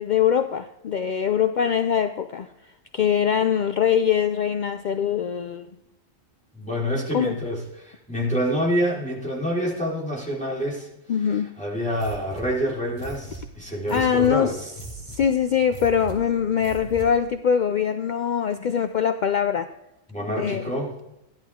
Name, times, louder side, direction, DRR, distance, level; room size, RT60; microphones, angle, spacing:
voice 1, 0.0-2.5 2.9-5.7 7.1-7.4 11.1-11.5 13.9-14.6 15.1-19.7 20.4-20.8, left 8 dB, 70° left, 10 dB, 0.4 m, -23 dB
voice 2, 6.5-10.9 11.6-14.7 20.1-20.9, equal, 5° left, -5 dB, 4.1 m, -27 dB
sound 1, 11.9-17.3, right 2 dB, 25° left, 2.0 m, -40 dB
13.5 x 10.5 x 3.6 m, 0.90 s
omnidirectional pair, 1.4 m